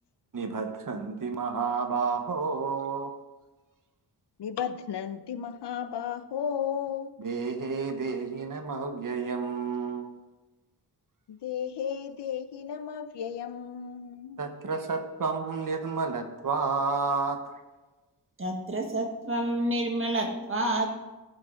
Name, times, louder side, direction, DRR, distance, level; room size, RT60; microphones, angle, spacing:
voice 1, 0.3-3.1 7.2-10.1 14.4-17.4, right 4 dB, 50° right, 1.2 m, -30 dB
voice 2, 4.4-7.1 11.3-14.4, left 8 dB, 80° left, 0.7 m, -34 dB
voice 3, 18.4-20.9, right 1 dB, 30° right, 1.6 m, -28 dB
16.0 x 6.0 x 3.9 m
wide cardioid pair, 135°, 41 cm